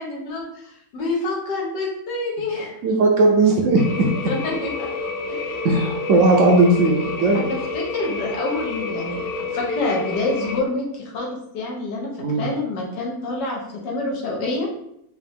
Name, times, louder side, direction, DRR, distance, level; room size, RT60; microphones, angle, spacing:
voice 1, 0.0-2.7 4.3-4.9 5.3-5.7 7.3-12.1 12.4-14.7, left 2 dB, 90° left, -2 dB, 1.7 m, -27 dB
voice 2, 2.8-4.1 5.6-7.5 12.2-12.5, right 2 dB, 65° right, 0 dB, 0.8 m, -17 dB
sound 1, 3.8-10.6, left 3 dB, 70° left, 1.0 m, -29 dB
4.7 x 2.4 x 3.5 m, 0.77 s
omnidirectional pair, 1.8 m